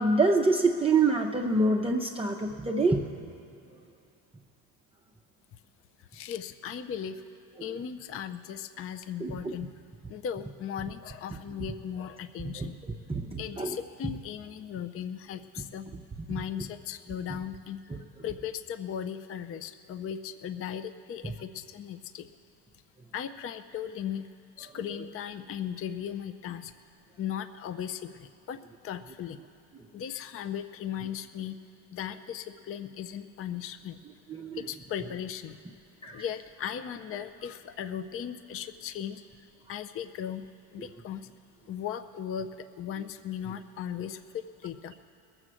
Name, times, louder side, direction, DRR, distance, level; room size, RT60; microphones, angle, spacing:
voice 1, 0.0-3.0 9.2-9.5 12.6-12.7 13.1-13.8 34.3-34.6 36.0-36.2, right 3 dB, 10° right, 0 dB, 0.6 m, -26 dB
voice 2, 6.1-7.2 7.6-9.7 10.1-12.8 13.4-15.9 16.3-17.8 18.2-22.3 23.1-24.3 24.6-26.7 27.2-28.6 28.8-29.4 29.9-31.6 31.9-34.0 34.6-35.6 36.1-39.2 39.7-40.4 40.7-41.3 41.7-44.9, left 9 dB, 30° left, 11 dB, 0.5 m, -37 dB
20.5 x 7.8 x 6.2 m, 2.6 s
supercardioid pair, 100°, 47 cm